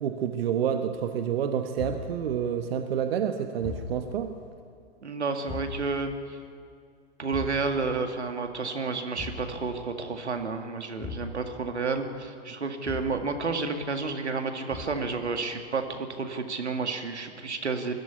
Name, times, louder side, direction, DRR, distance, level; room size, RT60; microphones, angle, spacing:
voice 1, 0.0-4.3, right 8 dB, 60° right, 7 dB, 1.3 m, -28 dB
Thump thud, 1.8-2.1 3.6-4.0 5.5-5.8 7.3-7.7 9.1-9.5 11.0-11.3 12.8-13.2 14.7-15.0, left 4 dB, 5° left, 4.9 m, -38 dB
voice 2, 5.0-6.4 7.2-17.9, right 4 dB, 85° right, 6 dB, 2.2 m, -31 dB
21.0 x 13.5 x 9.8 m, 2.2 s
hypercardioid pair, 115°, 33 cm